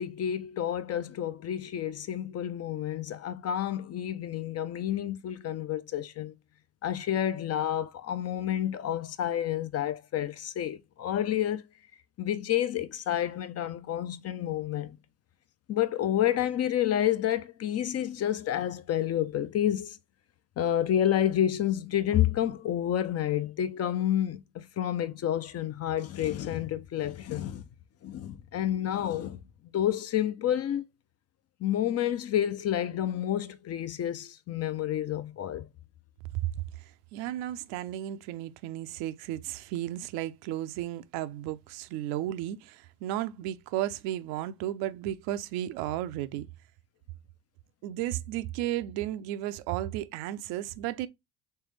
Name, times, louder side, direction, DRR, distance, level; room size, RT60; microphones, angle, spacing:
voice 1, 0.0-6.3 6.8-11.6 12.2-15.0 15.7-20.0 20.6-27.7 28.0-29.4 29.7-30.8 31.6-35.7, left 11 dB, 40° left, 0.5 m, -29 dB
voice 2, 36.3-46.5 47.8-51.1, right 13 dB, 75° right, 0.5 m, -34 dB
3.3 x 3.3 x 3.2 m
hypercardioid pair, 60°, 38 cm